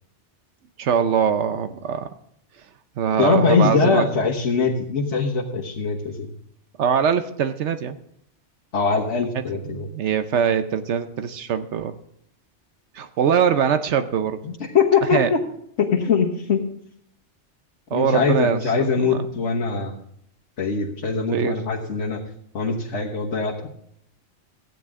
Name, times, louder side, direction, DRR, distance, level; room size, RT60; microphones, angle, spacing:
voice 1, 0.8-2.1 3.0-4.0 6.8-8.0 9.3-11.9 12.9-14.4 15.1-15.3 17.9-19.2 19.9-20.0 21.3-21.6, right 7 dB, 80° right, 9 dB, 1.0 m, -22 dB
voice 2, 3.2-6.3 8.7-9.9 14.4-15.4 15.8-16.6 17.9-19.9 20.6-22.2 22.5-23.7, left 5 dB, 85° left, -2 dB, 1.6 m, -22 dB
15.0 x 9.1 x 3.6 m, 0.71 s
omnidirectional pair, 1.2 m